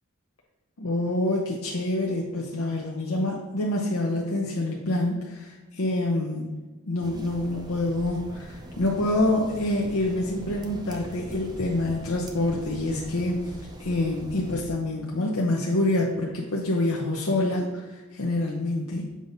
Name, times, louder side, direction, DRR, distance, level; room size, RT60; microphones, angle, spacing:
voice 1, 0.8-6.5 6.8-19.1, left 1 dB, 85° left, -2 dB, 0.8 m, -27 dB
sound 1, 7.0-14.6, right 1 dB, 20° right, 0.6 m, -42 dB
7.6 x 2.7 x 5.2 m, 1.3 s
head